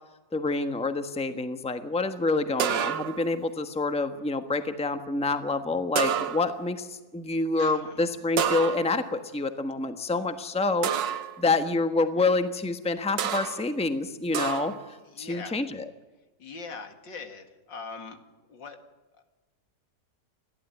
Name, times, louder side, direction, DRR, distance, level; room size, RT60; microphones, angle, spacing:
voice 1, 0.3-15.8, left 3 dB, 5° left, 8 dB, 1.1 m, -27 dB
sound 1, 2.6-3.3 6.0-6.7 8.4-9.1 10.8-11.4 13.2-13.7 14.3-14.9, right 8 dB, 80° right, 1.8 m, -29 dB
voice 2, 7.6-8.1 15.1-15.6 16.4-18.8 19.2-19.3, left 4 dB, 90° left, 6 dB, 2.8 m, -42 dB
30.0 x 12.5 x 9.5 m, 1.2 s
omnidirectional pair, 1.9 m